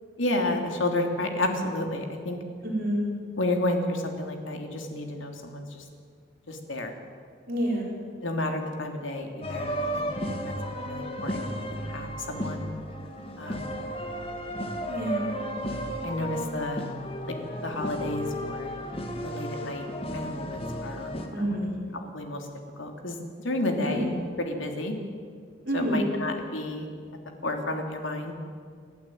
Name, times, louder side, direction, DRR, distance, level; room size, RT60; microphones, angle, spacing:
voice 1, 0.2-2.4 3.4-5.8 6.5-6.9 8.2-10.0 10.3-10.5 10.8-12.6 13.4-13.7 16.0-16.8 17.3-18.7 19.2-19.8 20.1-21.1 21.4-21.6 21.9-22.5 22.8-24.1 24.4-24.9 25.7-26.9 27.4-28.3, left 1 dB, 90° left, 3 dB, 3.1 m, -31 dB
voice 2, 2.6-3.0 7.5-7.9 14.9-15.2 21.3-21.7 23.8-24.1 25.6-26.0, right 1 dB, 50° right, -3 dB, 4.7 m, -28 dB
sound 1, 9.4-21.3, equal, 30° left, 2.1 m, -34 dB
29.5 x 12.0 x 9.2 m, 2.1 s
head